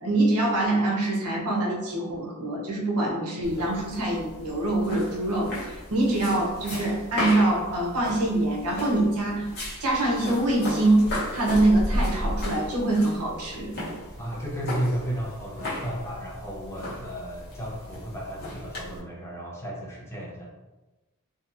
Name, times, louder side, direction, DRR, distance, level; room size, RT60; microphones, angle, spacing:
voice 1, 0.0-9.5 9.8-13.7, right 2 dB, 80° right, -2 dB, 0.7 m, -24 dB
sound 1, 3.4-19.0, left 1 dB, 50° left, 0.9 m, -35 dB
voice 2, 14.2-20.5, equal, 10° left, -4 dB, 0.5 m, -33 dB
2.8 x 2.2 x 2.5 m, 1.1 s
head